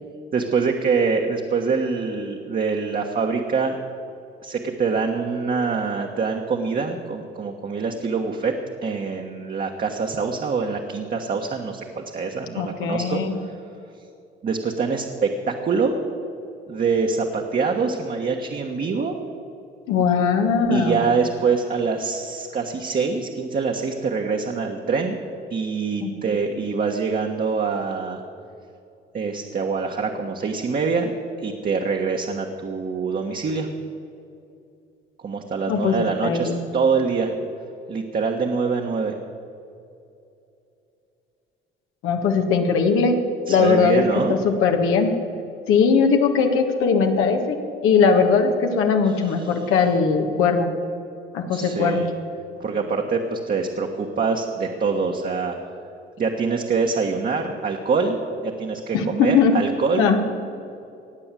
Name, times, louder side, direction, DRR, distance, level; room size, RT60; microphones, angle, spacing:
voice 1, 0.3-3.8 4.4-13.2 14.4-15.9 16.7-19.2 20.7-25.2 25.5-28.2 29.1-31.1 31.4-33.7 35.2-37.3 37.9-39.1 43.5-44.4 49.1-49.5 51.5-52.1 52.6-55.6 56.2-60.2, right 4 dB, 45° right, 1 dB, 1.4 m, -24 dB
voice 2, 12.6-13.3 19.9-21.0 26.0-26.1 35.7-36.6 42.0-43.1 43.5-44.0 44.3-45.1 45.7-47.6 47.8-50.7 51.3-52.0 58.9-59.5 60.0-60.2, left 5 dB, 85° left, 4 dB, 1.6 m, -19 dB
19.0 x 7.7 x 7.5 m, 2.6 s
cardioid pair, 85°, 21 cm